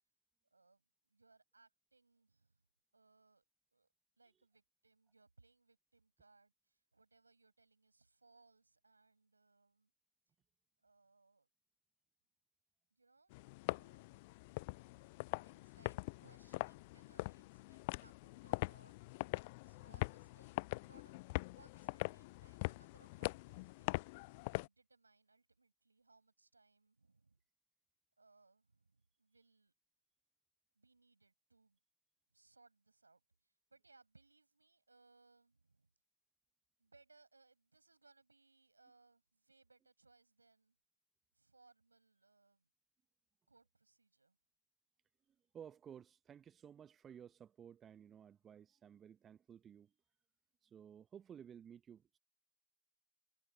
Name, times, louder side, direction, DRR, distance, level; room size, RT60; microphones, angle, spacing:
voice 1, 0.5-2.6 2.9-3.4 3.7-3.9 4.2-9.9 10.8-11.5 12.9-13.3 13.7-14.2 15.4-18.9 19.6-21.3 21.6-24.0 24.6-27.4 28.2-29.7 30.7-31.8 32.3-35.9 36.8-40.8 41.3-42.7 43.5-44.4, right 3 dB, 85° right, 7.9 m, -70 dB
sound 1, 13.3-24.7, left 24 dB, 50° left, 0.3 m, -43 dB
voice 2, 45.5-49.9 50.6-52.2, right 8 dB, 25° right, 1.2 m, -56 dB
figure-of-eight pair, 90°, 0 cm